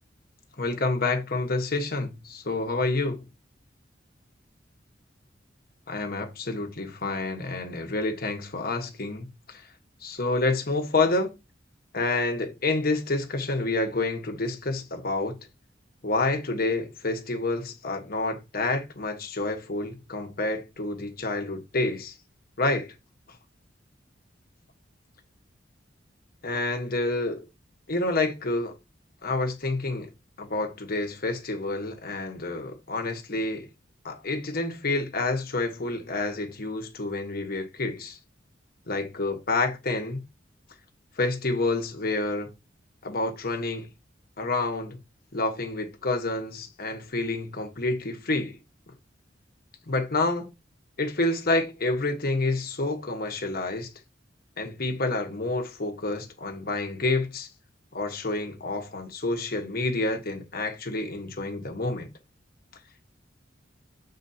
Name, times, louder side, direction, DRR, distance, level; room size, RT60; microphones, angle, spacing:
voice 1, 0.6-3.2 5.9-9.7 10.0-11.3 11.9-15.4 16.0-22.1 22.6-22.9 26.4-27.5 27.9-28.7 29.2-30.1 30.4-33.7 34.0-38.2 38.9-40.2 41.2-42.5 43.0-43.9 44.4-45.0 45.3-48.6 49.9-50.5 51.0-53.9 54.6-57.5 57.9-62.1, left 2 dB, 55° left, 1.4 m, -28 dB
7.8 x 4.8 x 2.8 m
head